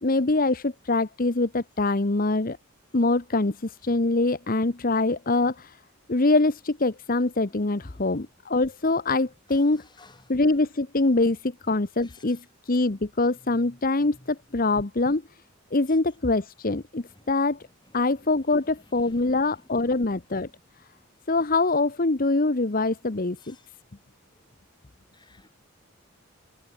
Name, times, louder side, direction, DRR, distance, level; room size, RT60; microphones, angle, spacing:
voice 1, 0.0-2.6 2.9-5.8 6.1-9.8 10.3-15.2 15.7-17.6 17.9-20.5 21.3-23.6, left 2 dB, 40° left, 1.0 m, -24 dB
voice 2, 7.5-8.2 9.5-10.2 12.0-12.2 13.5-13.8 14.2-14.3 17.2-17.3 19.0-19.6 23.4-23.7 25.1-25.5, left 2 dB, 20° left, 3.3 m, -54 dB
head